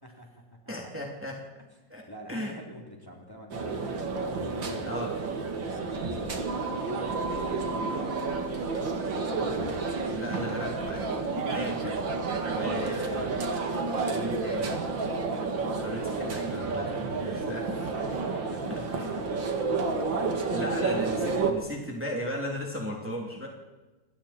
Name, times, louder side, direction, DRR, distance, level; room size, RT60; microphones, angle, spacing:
voice 1, 0.0-0.7 2.1-5.3 5.8-8.4 9.1-9.5 18.1-20.6 20.9-21.3, equal, 10° left, 0 dB, 3.4 m, -47 dB
voice 2, 0.7-1.4 1.9-2.0 2.3-2.5 4.9-5.1 10.1-11.1 11.5-12.0 12.5-13.3 14.1-14.7 15.8-17.8 19.0-19.1 20.5-23.5, equal, 5° right, -1 dB, 3.0 m, -36 dB
sound 1, 3.5-21.5, right 4 dB, 90° right, 2.9 m, -30 dB
28.0 x 22.0 x 4.4 m, 1.2 s
omnidirectional pair, 2.0 m